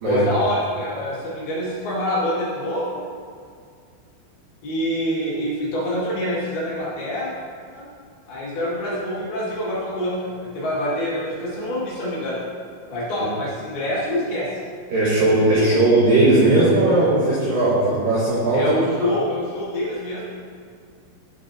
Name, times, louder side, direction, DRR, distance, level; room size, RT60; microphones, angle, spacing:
voice 1, 0.0-3.0 4.6-7.3 7.7-7.9 8.3-12.4 12.9-14.5 15.6-15.7 18.5-20.3, equal, 60° left, -8 dB, 3.3 m, -25 dB
voice 2, 14.9-18.7 19.0-19.1, right 2 dB, 75° right, -6 dB, 2.0 m, -18 dB
12.5 x 7.4 x 2.7 m, 2.2 s
omnidirectional pair, 5.9 m